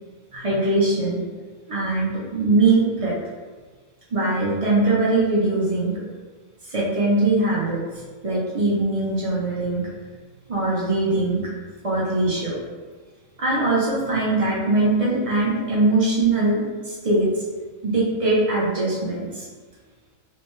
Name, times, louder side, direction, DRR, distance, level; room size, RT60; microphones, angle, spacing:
voice 1, 0.3-1.2 1.7-3.1 4.1-6.0 6.7-7.8 8.2-9.9 10.5-11.4 11.8-12.6 13.4-17.4 17.8-19.5, right 2 dB, 45° right, -6 dB, 0.4 m, -21 dB
2.6 x 2.1 x 3.0 m, 1.4 s
omnidirectional pair, 1.4 m